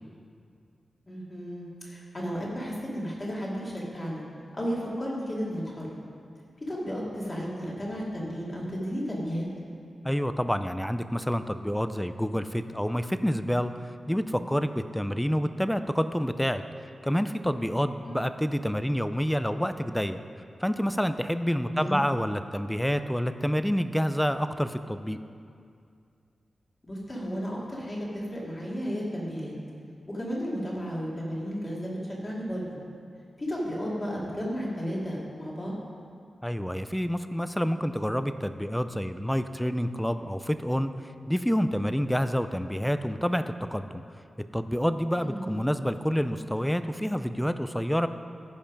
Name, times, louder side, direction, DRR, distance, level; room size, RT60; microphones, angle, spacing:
voice 1, 1.1-4.2 4.5-6.0 6.7-9.4 18.0-18.2 21.6-22.0 26.8-29.5 30.1-32.8 33.4-35.7 45.2-45.6, equal, 25° left, -5 dB, 2.3 m, -33 dB
voice 2, 10.0-16.6 17.0-20.2 20.6-25.2 36.4-40.9 41.3-44.0 44.5-48.1, equal, 5° left, 10 dB, 0.3 m, -28 dB
14.5 x 5.5 x 5.2 m, 2.4 s
wide cardioid pair, 145°, 0 cm